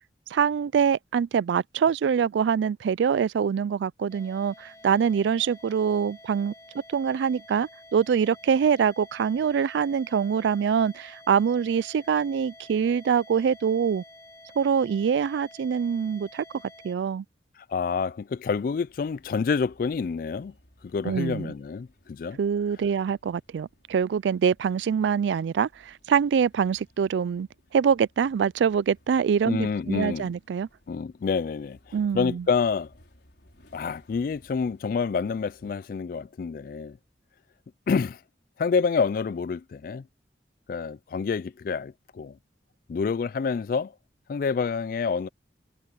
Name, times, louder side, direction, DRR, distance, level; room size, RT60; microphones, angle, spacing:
voice 1, 0.3-6.5 6.9-14.0 14.6-16.4 16.8-17.2 21.0-21.5 22.4-27.5 27.7-30.7 31.9-32.4, right 7 dB, 85° right, 0.3 m, -24 dB
sound 1, 4.1-16.9, left 1 dB, 20° left, 2.5 m, -50 dB
voice 2, 17.7-20.5 20.8-22.4 29.5-30.3 30.9-32.9 33.7-37.0 37.9-38.2 38.6-40.1 40.7-42.4 42.9-43.9 44.3-45.3, left 5 dB, 50° left, 0.3 m, -28 dB
sound 2, 18.3-35.7, left 1 dB, 70° left, 4.6 m, -60 dB
head